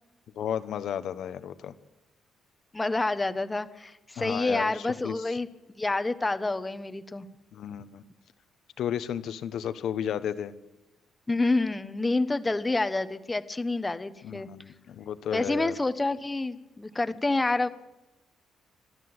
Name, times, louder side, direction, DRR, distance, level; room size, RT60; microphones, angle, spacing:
voice 1, 0.3-1.7 4.2-5.1 7.5-8.0 8.8-10.5 14.2-15.7, left 9 dB, 70° left, 12 dB, 1.2 m, -33 dB
voice 2, 2.7-5.5 5.8-7.3 11.3-14.5 15.3-17.7, left 2 dB, 15° left, 12 dB, 1.2 m, -28 dB
30.0 x 12.5 x 8.0 m, 1.0 s
cardioid pair, 90°, 0 cm